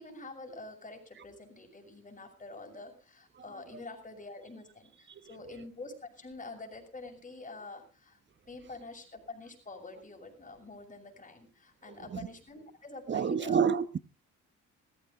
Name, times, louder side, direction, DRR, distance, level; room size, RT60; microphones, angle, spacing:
voice 1, 0.0-8.2 8.5-13.6, left 3 dB, 25° left, 6.4 m, -46 dB
voice 2, 11.9-12.3 13.1-14.0, right 7 dB, 40° right, 1.1 m, -29 dB
18.5 x 14.5 x 3.9 m
cardioid pair, 90°, 30 cm